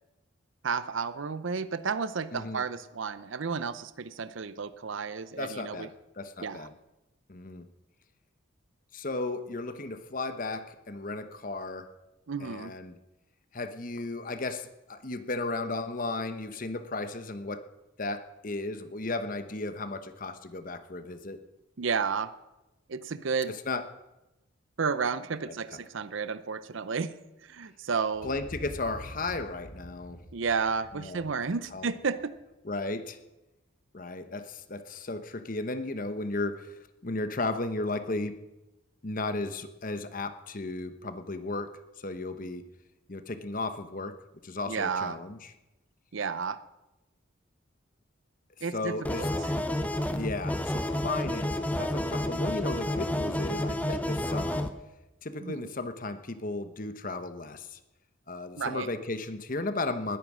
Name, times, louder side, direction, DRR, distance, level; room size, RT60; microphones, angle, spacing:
voice 1, 0.6-5.9 6.4-6.7 12.3-12.7 21.8-22.3 22.9-23.5 24.8-27.1 27.4-28.3 30.3-32.3 44.7-45.2 46.1-46.6 48.6-49.5 55.4-55.7 58.6-58.9, right 5 dB, 70° right, 14 dB, 0.6 m, -32 dB
voice 2, 2.3-2.6 5.4-6.7 7.3-7.7 8.9-11.9 12.4-13.0 13.5-17.6 18.0-21.4 23.5-23.8 28.2-30.2 30.9-31.3 31.7-31.9 32.6-33.2 33.9-38.4 39.0-42.7 43.1-44.1 44.4-45.5 48.6-49.3 50.1-54.7 55.2-57.8 58.3-60.2, left 2 dB, 40° left, 10 dB, 1.0 m, -35 dB
sound 1, 28.1-32.7, equal, 90° left, 3.2 m, -46 dB
sound 2, 49.0-54.7, left 1 dB, 5° left, 0.7 m, -30 dB
20.0 x 9.2 x 6.2 m, 0.99 s
head